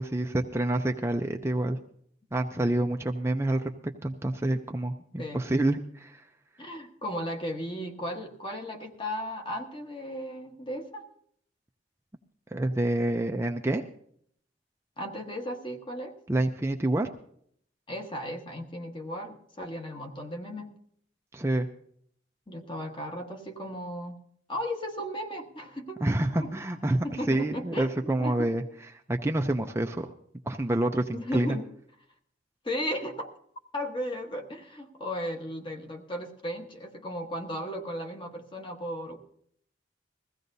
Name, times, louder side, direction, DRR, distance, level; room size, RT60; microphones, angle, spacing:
voice 1, 0.0-1.8 2.3-3.7 4.0-6.2 12.5-13.8 16.3-17.1 21.3-21.7 26.0-28.6 29.1-30.1 30.5-31.6, right 1 dB, 15° right, 4 dB, 0.5 m, -27 dB
voice 2, 6.6-11.0 15.0-16.2 17.9-20.7 22.5-24.1 24.5-26.0 26.4-26.5 27.0-28.5 31.1-31.7 32.6-33.3 33.7-39.2, equal, 30° left, 4 dB, 1.2 m, -35 dB
21.0 x 15.5 x 2.7 m, 0.64 s
head